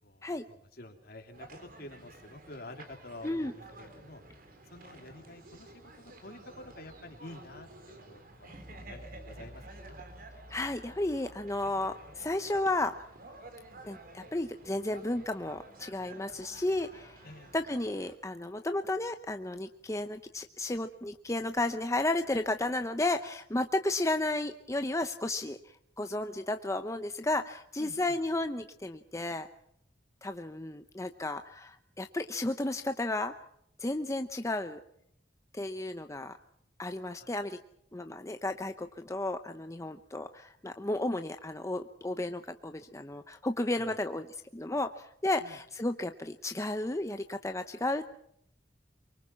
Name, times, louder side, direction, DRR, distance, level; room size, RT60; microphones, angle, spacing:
voice 1, 0.0-4.2 4.7-10.0 17.2-17.5 27.8-28.2 37.2-37.3 43.7-44.0 45.4-45.6, left 1 dB, 60° left, 4 dB, 3.5 m, -49 dB
sound 1, 1.3-18.2, right 2 dB, 55° right, 3.8 m, -52 dB
sound 2, 8.5-14.5, equal, 25° right, 2.3 m, -53 dB
voice 2, 10.5-13.0 13.8-17.2 17.5-29.5 30.2-33.3 33.8-34.8 35.5-36.4 36.8-37.6 37.9-48.0, left 2 dB, 15° left, 7 dB, 0.8 m, -33 dB
24.5 x 23.5 x 5.9 m, 0.71 s
head